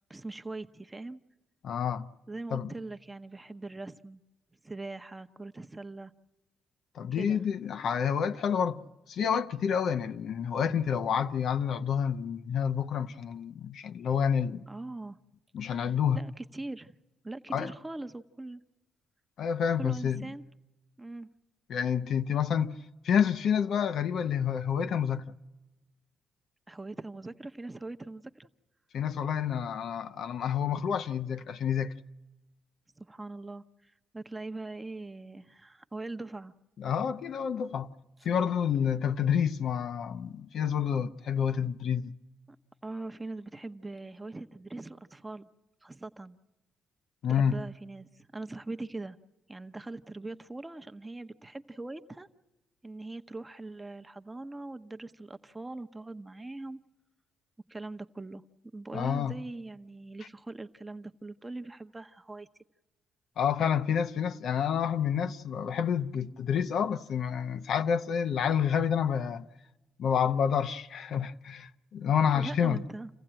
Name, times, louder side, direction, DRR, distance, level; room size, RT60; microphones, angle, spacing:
voice 1, 0.1-1.2 2.3-4.2 4.6-6.1 7.1-7.4 14.7-15.2 15.8-17.0 17.2-18.6 19.8-20.4 21.0-21.3 26.7-28.5 33.0-36.5 42.5-42.6 42.8-45.5 45.8-46.4 47.3-49.2 49.5-52.3 52.8-56.8 57.7-58.4 58.7-62.5 72.3-73.1, right 2 dB, 15° right, 0.8 m, -41 dB
voice 2, 1.6-2.1 2.5-2.7 6.9-8.8 9.1-14.7 15.5-16.2 17.5-17.7 19.4-20.3 21.7-22.8 23.0-25.3 28.9-31.9 36.8-37.9 38.2-42.1 47.2-47.6 58.9-59.4 63.4-69.5 70.0-72.8, left 8 dB, 65° left, 0.7 m, -29 dB
27.5 x 15.5 x 8.9 m
cardioid pair, 90°, 0 cm